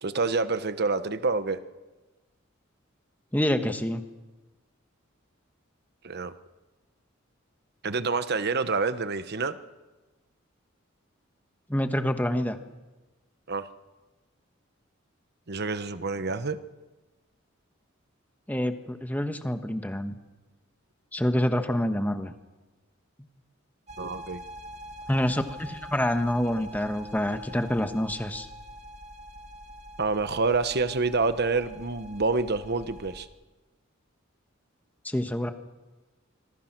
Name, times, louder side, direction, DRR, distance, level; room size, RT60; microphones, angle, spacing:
voice 1, 0.0-1.6 6.0-6.3 7.8-9.6 13.5-13.7 15.5-16.6 24.0-24.4 30.0-33.3, right 3 dB, 55° right, 11 dB, 1.1 m, -27 dB
voice 2, 3.3-4.0 11.7-12.6 18.5-20.2 21.1-22.3 25.1-28.5 35.0-35.5, left 1 dB, 10° left, 7 dB, 1.3 m, -27 dB
sound 1, 23.9-33.3, equal, 35° right, 2.2 m, -45 dB
26.0 x 22.5 x 6.1 m, 1.2 s
head